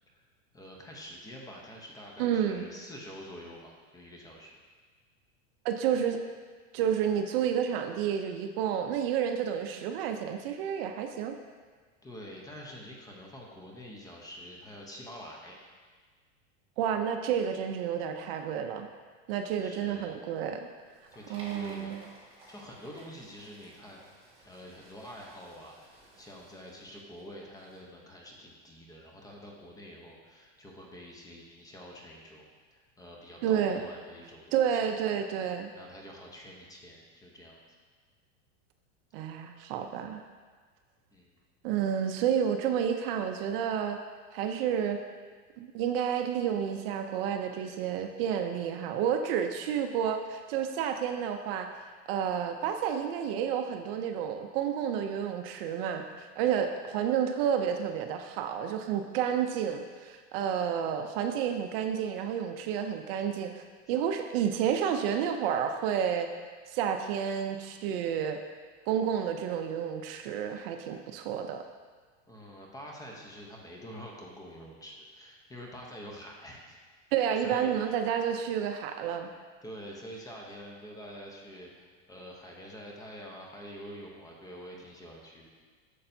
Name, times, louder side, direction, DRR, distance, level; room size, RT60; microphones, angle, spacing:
voice 1, 0.5-4.6 12.0-15.6 19.6-20.2 21.1-24.0 24.4-32.5 32.7-34.8 35.7-37.6 41.1-41.3 72.3-76.8 77.4-78.0 79.6-85.5, equal, 10° left, -1 dB, 0.7 m, -47 dB
voice 2, 2.2-2.7 5.6-6.2 6.7-11.4 16.8-18.9 19.3-20.7 21.3-22.0 33.4-33.8 34.5-35.7 39.1-40.2 41.6-44.0 44.3-45.0 45.6-51.7 52.1-63.6 63.9-66.3 66.7-68.4 68.9-71.6 77.1-79.3, right 8 dB, 50° right, 6 dB, 0.5 m, -30 dB
sound 1, 20.6-27.8, right 1 dB, 15° right, 2.0 m, -55 dB
8.6 x 6.8 x 2.6 m, 1.5 s
supercardioid pair, 150°, 37 cm